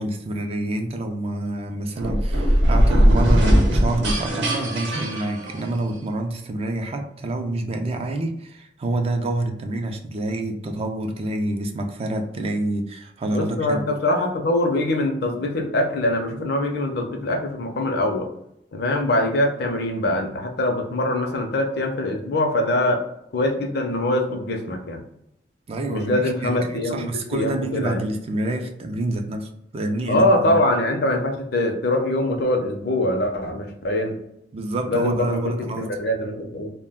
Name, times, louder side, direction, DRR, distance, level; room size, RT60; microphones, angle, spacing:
voice 1, 0.0-13.8 25.7-30.6 34.5-35.9, right 1 dB, 35° right, 4 dB, 0.3 m, -27 dB
sound 1, 2.0-6.0, equal, 85° right, 0.8 m, -19 dB
voice 2, 13.3-18.3 18.7-23.0 23.3-25.0 25.9-28.0 30.1-34.2 34.9-36.7, left 1 dB, 65° left, 4 dB, 0.5 m, -23 dB
2.2 x 2.1 x 3.5 m, 0.78 s
head